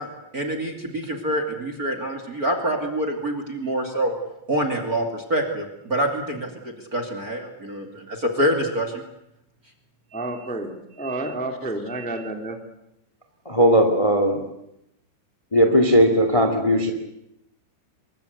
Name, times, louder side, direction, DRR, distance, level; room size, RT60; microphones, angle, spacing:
voice 1, 0.0-4.1 4.5-9.0 11.6-11.7, right 1 dB, 25° right, 5 dB, 2.0 m, -26 dB
voice 2, 10.1-12.6, right 2 dB, 5° left, 4 dB, 1.3 m, -30 dB
voice 3, 13.4-14.4 15.5-16.9, equal, 30° left, 5 dB, 0.6 m, -17 dB
25.5 x 22.5 x 8.2 m, 0.82 s
omnidirectional pair, 5.6 m